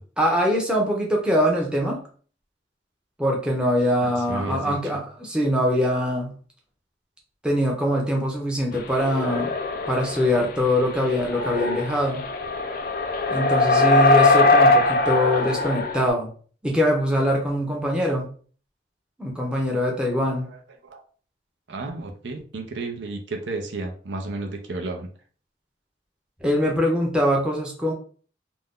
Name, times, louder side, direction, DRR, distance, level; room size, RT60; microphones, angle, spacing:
voice 1, 0.2-2.0 3.2-6.3 7.4-9.5 9.9-12.2 13.3-16.3 16.6-18.3 19.2-20.5 26.4-27.9, equal, 5° right, -1 dB, 0.6 m, -23 dB
voice 2, 4.0-4.8 20.4-20.6 20.9-21.0 21.7-25.1, right 2 dB, 85° right, 3 dB, 0.6 m, -32 dB
sound 1, 9.0-10.5 11.0-16.1, left 2 dB, 50° left, 0.3 m, -21 dB
2.6 x 2.2 x 3.5 m, 0.43 s
head